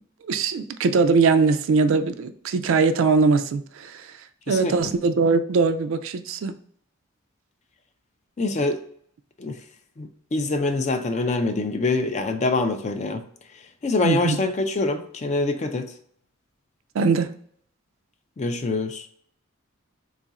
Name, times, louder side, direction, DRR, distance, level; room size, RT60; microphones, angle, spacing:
voice 1, 0.2-4.2 4.5-6.5 14.0-14.4 16.9-17.3, right 4 dB, 65° right, 10 dB, 0.3 m, -21 dB
voice 2, 8.4-8.8 9.4-9.6 10.0-13.2 13.8-15.9 18.4-19.1, left 3 dB, 30° left, 8 dB, 0.3 m, -25 dB
3.7 x 2.4 x 4.0 m, 0.63 s
head